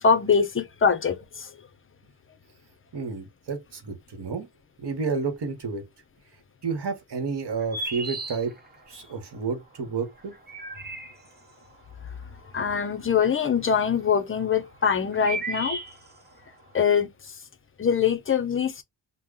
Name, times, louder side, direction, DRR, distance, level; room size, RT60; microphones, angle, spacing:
voice 1, 0.0-1.5 12.5-15.8 16.7-17.1 17.8-18.8, left 6 dB, 30° left, 0.5 m, -23 dB
voice 2, 2.9-4.5 4.8-5.8 6.6-8.5 8.9-10.3, right 5 dB, 65° right, 1.1 m, -30 dB
sound 1, 7.5-8.9 10.2-11.5 12.7-13.4 14.4-16.4, right 3 dB, 20° right, 0.9 m, -34 dB
2.9 x 2.1 x 3.6 m
wide cardioid pair, 130°, 44 cm